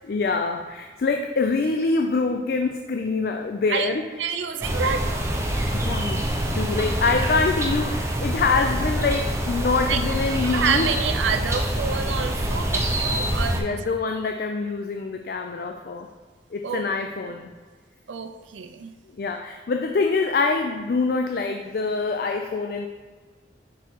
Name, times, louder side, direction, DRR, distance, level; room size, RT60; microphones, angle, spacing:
voice 1, 0.1-4.1 5.7-10.9 13.6-16.1 16.5-17.5 19.2-22.9, left 4 dB, 50° left, 4 dB, 0.4 m, -25 dB
voice 2, 4.2-5.2 9.9-10.0 10.4-13.8 16.6-16.8 18.1-18.9, right 6 dB, 85° right, 7 dB, 0.5 m, -28 dB
sound 1, 4.6-13.6, right 1 dB, 15° right, 0.6 m, -25 dB
6.0 x 4.3 x 4.6 m, 1.4 s
head